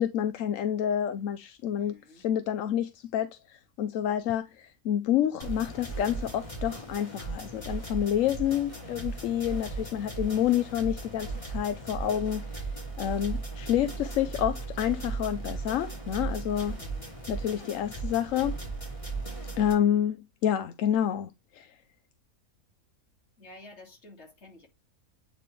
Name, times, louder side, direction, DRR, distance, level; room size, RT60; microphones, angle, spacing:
voice 1, 0.0-12.4 13.0-16.8 17.3-18.6 19.6-21.7, left 10 dB, 70° left, 0.9 m, -28 dB
voice 2, 1.8-2.2 16.7-17.1 23.4-24.7, left 2 dB, 50° left, 2.2 m, -51 dB
sound 1, 5.4-19.7, right 3 dB, 20° left, 2.8 m, -37 dB
8.3 x 4.1 x 3.2 m
omnidirectional pair, 1.5 m